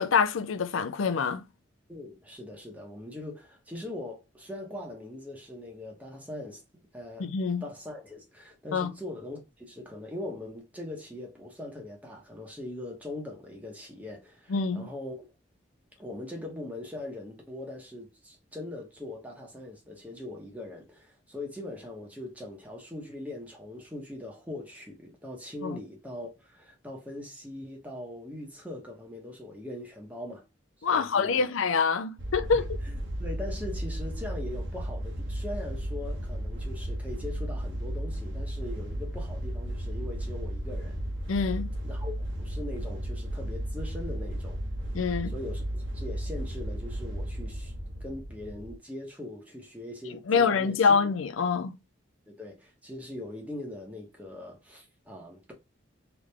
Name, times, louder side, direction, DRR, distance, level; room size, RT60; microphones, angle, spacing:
voice 1, 0.0-1.5 7.2-7.6 8.7-8.9 14.5-14.9 25.6-25.8 30.8-32.6 41.3-41.7 44.9-45.3 50.3-51.8, left 5 dB, 90° left, 0.5 m, -25 dB
voice 2, 1.9-6.6 6.9-7.3 7.6-15.3 16.0-30.5 30.9-31.5 32.5-41.0 41.8-44.6 45.3-47.7 48.0-51.0 52.3-55.5, left 1 dB, 10° right, 1.2 m, -41 dB
sound 1, 32.2-48.7, equal, 75° right, 1.2 m, -34 dB
3.7 x 3.4 x 3.4 m
head